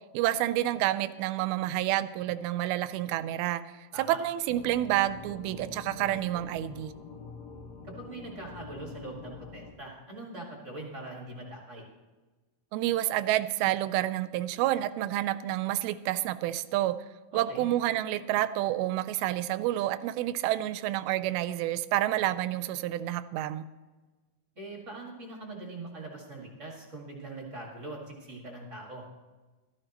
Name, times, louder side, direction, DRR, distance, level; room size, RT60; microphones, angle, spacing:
voice 1, 0.1-3.6 4.0-6.9 12.7-17.0 17.3-23.7, right 14 dB, 85° right, 13 dB, 2.4 m, -29 dB
sound 1, 4.5-9.7, left 4 dB, 55° left, 2.3 m, -46 dB
voice 2, 7.8-11.8 17.3-17.7 24.5-29.0, right 2 dB, 30° right, -2 dB, 1.3 m, -42 dB
15.0 x 13.5 x 3.0 m, 1.2 s
omnidirectional pair, 4.3 m